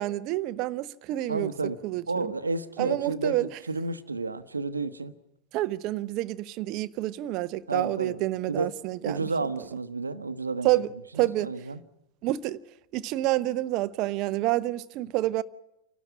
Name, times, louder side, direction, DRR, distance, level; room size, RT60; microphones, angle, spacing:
voice 1, 0.0-1.5 1.8-2.3 2.8-3.5 5.5-9.3 10.6-10.9 11.1-11.5 12.2-12.6 12.9-15.4, right 16 dB, 40° right, 0.7 m, -28 dB
voice 2, 1.3-1.8 2.1-5.1 7.7-8.2 8.5-8.7 9.0-10.7 11.1-11.8, right 3 dB, 80° right, 1.0 m, -31 dB
28.0 x 12.5 x 9.9 m
figure-of-eight pair, 90°, 0 cm